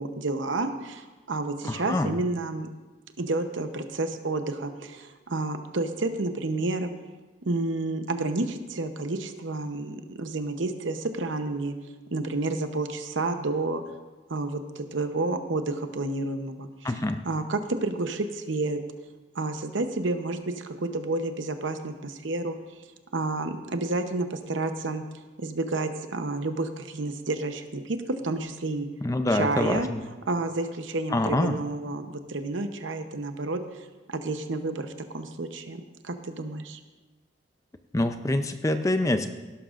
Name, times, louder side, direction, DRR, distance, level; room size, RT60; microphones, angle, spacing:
voice 1, 0.0-2.7 3.2-6.9 7.4-11.7 12.1-13.8 14.3-17.0 17.2-18.8 19.3-22.6 23.1-25.0 25.4-28.0 28.2-28.9 29.3-29.9 30.3-36.8, right 2 dB, 90° right, 7 dB, 0.8 m, -30 dB
voice 2, 1.6-2.2 16.8-17.2 29.0-30.0 31.1-31.6 37.9-39.3, left 1 dB, 15° left, 8 dB, 0.4 m, -25 dB
17.0 x 11.5 x 2.5 m, 1.2 s
head